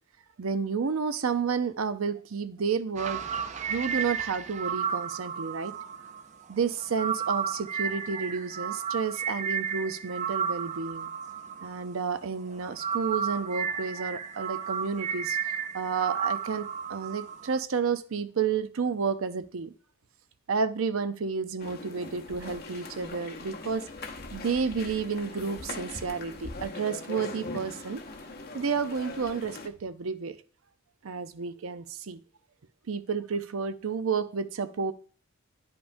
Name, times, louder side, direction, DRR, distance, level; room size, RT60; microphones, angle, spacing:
voice 1, 0.4-3.3 3.7-5.7 6.5-11.1 11.6-19.7 20.5-23.9 24.3-28.0 28.5-30.3 31.0-32.2 32.9-34.9, right 5 dB, 75° right, 11 dB, 0.6 m, -31 dB
sound 1, 3.0-12.2 12.5-17.6, right 7 dB, 35° right, 0.3 m, -33 dB
sound 2, 21.6-29.7, left 3 dB, 45° left, 0.7 m, -41 dB
10.0 x 5.2 x 2.6 m, 0.42 s
head